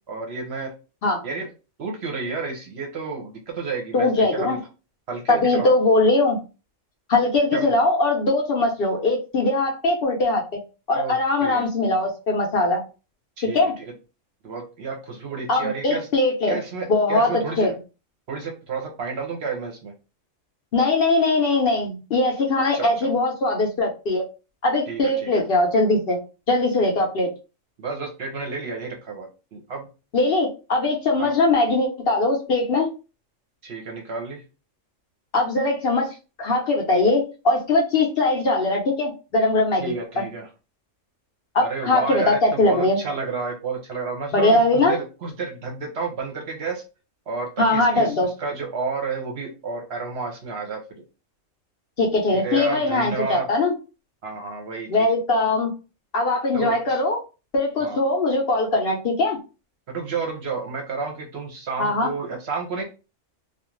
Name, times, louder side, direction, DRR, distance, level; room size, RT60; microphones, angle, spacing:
voice 1, 0.1-0.7 1.2-1.5 1.8-4.6 5.1-5.7 7.5-7.7 10.9-11.1 11.4-11.7 13.4-13.6 14.4-16.1 16.5-17.8 18.3-19.9 22.7-23.1 24.9-25.4 27.8-29.9 31.2-31.3 33.6-34.4 39.7-40.5 41.6-46.8 47.3-50.8 52.3-53.5 54.2-55.1 56.5-57.0 57.8-58.0 59.9-62.8, right 4 dB, 60° right, 2 dB, 0.9 m, -31 dB
voice 2, 3.9-4.6 5.3-6.4 7.1-10.4 10.9-12.8 13.5-13.7 15.5-16.6 16.9-17.7 20.7-24.2 24.6-26.2 26.5-27.3 30.1-32.9 35.3-39.9 41.5-43.0 44.3-45.0 47.6-48.3 52.0-53.7 54.9-55.7 56.1-57.2 57.5-59.4 61.8-62.1, left 2 dB, 55° left, 0 dB, 0.8 m, -21 dB
2.4 x 2.3 x 3.0 m, 0.31 s
omnidirectional pair, 1.3 m